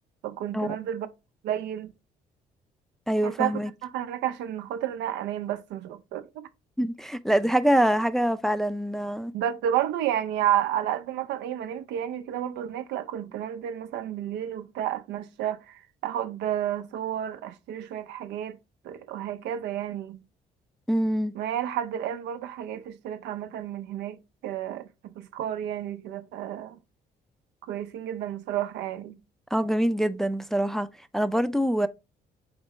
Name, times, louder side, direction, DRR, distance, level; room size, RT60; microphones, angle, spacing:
voice 1, 0.2-1.1 1.4-1.9 3.2-6.4 9.3-18.6 18.8-20.2 21.3-26.8 27.6-29.2, right 11 dB, 75° right, 0.5 m, -31 dB
voice 2, 3.1-3.7 6.8-9.3 20.9-21.3 29.5-30.9 31.1-31.9, right 1 dB, ahead, 0.4 m, -24 dB
4.4 x 3.6 x 3.0 m
supercardioid pair, 65°, 18 cm